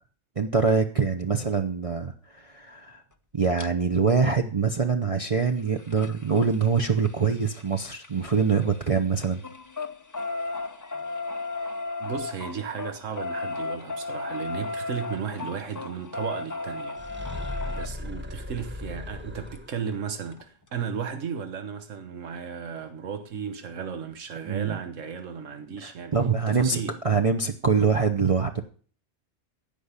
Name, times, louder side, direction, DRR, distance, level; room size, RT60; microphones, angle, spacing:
voice 1, 0.4-3.0 3.3-9.4 24.4-24.8 25.8-28.6, right 5 dB, 30° right, 0.8 m, -24 dB
sound 1, 3.6-3.7 5.3-8.8 9.1-17.9 19.5-19.6 19.9-20.0 20.3-20.4, left 3 dB, 25° left, 0.4 m, -35 dB
voice 2, 12.0-26.2 26.5-27.0, right 7 dB, 90° right, 1.5 m, -35 dB
sound 2, 17.0-20.0, left 1 dB, 10° right, 1.0 m, -36 dB
15.5 x 5.2 x 8.2 m
omnidirectional pair, 1.3 m